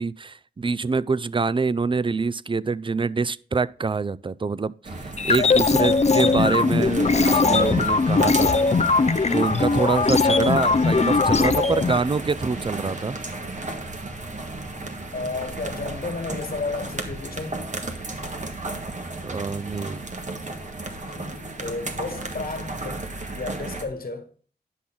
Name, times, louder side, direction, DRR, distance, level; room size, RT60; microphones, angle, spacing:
voice 1, 0.0-8.6 9.3-13.2 19.2-20.0, right 4 dB, 30° right, 0.4 m, -25 dB
sound 1, 4.8-23.8, right 2 dB, 45° right, 1.5 m, -33 dB
sound 2, 5.2-12.0, left 4 dB, 40° left, 0.6 m, -20 dB
voice 2, 15.1-17.6 21.1-24.3, left 3 dB, 65° left, 1.7 m, -33 dB
10.0 x 6.0 x 3.6 m
wide cardioid pair, 80°, 17 cm